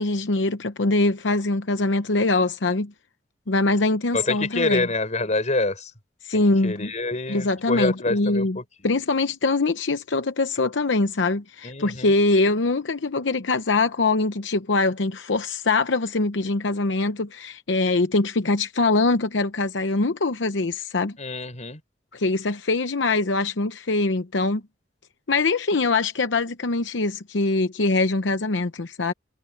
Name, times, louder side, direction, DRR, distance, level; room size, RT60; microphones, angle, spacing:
voice 1, 0.0-2.9 3.5-4.9 6.2-6.9 7.3-8.6 8.8-21.2 22.1-24.6 25.3-29.1, left 3 dB, 85° left, 0.8 m, -23 dB
voice 2, 4.1-5.9 6.3-8.6 11.6-12.1 21.2-21.8, left 2 dB, 40° left, 5.8 m, -26 dB
head